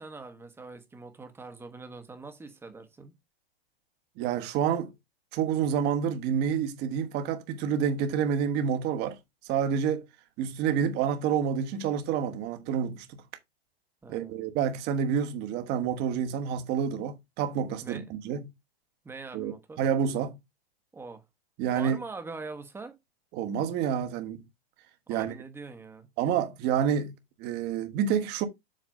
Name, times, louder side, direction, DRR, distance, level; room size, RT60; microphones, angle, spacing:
voice 1, 0.0-3.1 14.0-14.3 17.8-18.1 19.0-19.8 20.9-21.2 21.7-23.0 25.1-26.1, right 3 dB, 10° right, 1.0 m, -43 dB
voice 2, 4.2-4.9 5.3-9.2 9.5-10.1 10.4-13.2 14.1-18.5 19.3-19.5 19.8-20.4 21.6-22.0 23.3-24.4 25.1-25.3 26.2-27.1 27.4-28.5, right 8 dB, 35° right, 1.2 m, -28 dB
7.6 x 3.2 x 5.3 m
hypercardioid pair, 140°, 31 cm